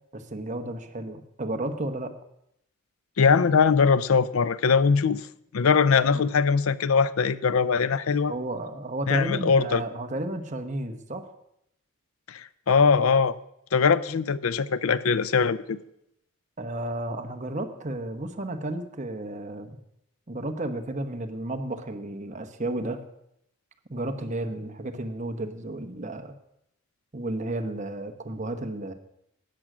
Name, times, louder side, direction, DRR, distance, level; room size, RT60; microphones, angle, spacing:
voice 1, 0.1-2.1 6.1-6.2 8.3-11.3 16.6-19.8 20.3-23.0 23.9-26.3 27.1-28.9, right 1 dB, 35° right, 1.1 m, -32 dB
voice 2, 3.2-5.3 5.5-8.3 9.1-9.8 12.3-13.3 13.7-15.8, left 5 dB, 85° left, 0.5 m, -21 dB
13.0 x 9.0 x 6.2 m
head